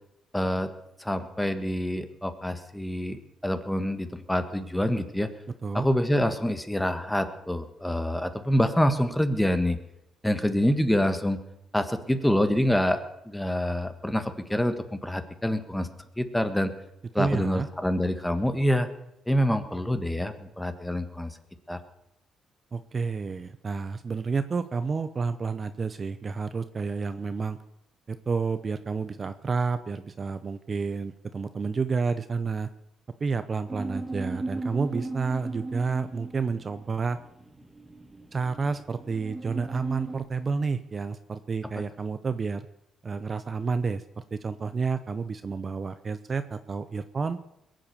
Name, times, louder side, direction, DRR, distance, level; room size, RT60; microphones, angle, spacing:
voice 1, 0.3-0.7 1.0-5.3 5.7-9.8 10.2-11.4 11.7-13.0 13.3-15.9 16.2-16.7 17.1-18.9 19.3-21.3 21.7-21.8, equal, 5° left, 9 dB, 1.5 m, -26 dB
voice 2, 17.2-17.7 22.7-27.6 28.1-32.7 33.2-37.2 38.3-42.7 43.0-47.4, right 4 dB, 35° right, 11 dB, 0.7 m, -30 dB
sound 1, 33.7-40.2, right 2 dB, 15° right, 1.6 m, -37 dB
21.5 x 7.7 x 7.0 m, 0.85 s
cardioid pair, 90°, 0 cm